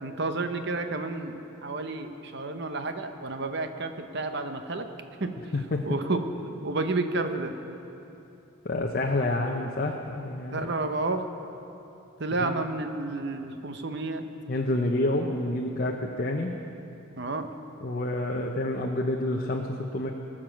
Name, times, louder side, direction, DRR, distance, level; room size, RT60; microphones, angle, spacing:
voice 1, 0.0-4.9 5.2-5.3 5.8-6.2 6.6-7.5 10.5-11.2 12.2-14.2 17.2-17.5, right 3 dB, 55° right, 7 dB, 0.8 m, -30 dB
voice 2, 8.6-10.7 12.4-12.5 14.5-16.5 17.8-20.1, left 1 dB, 45° left, 1 dB, 0.7 m, -28 dB
20.0 x 7.5 x 6.3 m, 2.9 s
head